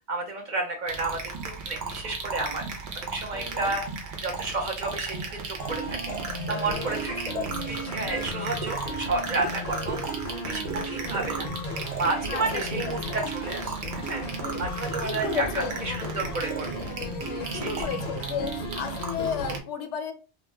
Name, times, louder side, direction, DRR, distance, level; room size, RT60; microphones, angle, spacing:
voice 1, 0.1-2.6 2.9-3.8 4.2-7.3 7.7-11.5 11.9-14.3 14.6-16.8 17.5-17.9, right 3 dB, 55° right, 2 dB, 0.6 m, -31 dB
sound 1, 0.9-19.6, right 5 dB, 75° right, 0.9 m, -36 dB
voice 2, 3.3-3.8 6.6-7.0 7.3-7.9 10.3-10.8 12.3-13.2 14.4-14.7 15.0-16.0 16.8-20.1, left 7 dB, 80° left, 7 dB, 0.9 m, -35 dB
sound 2, 5.6-19.6, equal, 50° left, 0.6 m, -35 dB
2.4 x 2.1 x 3.3 m, 0.34 s
omnidirectional pair, 1.2 m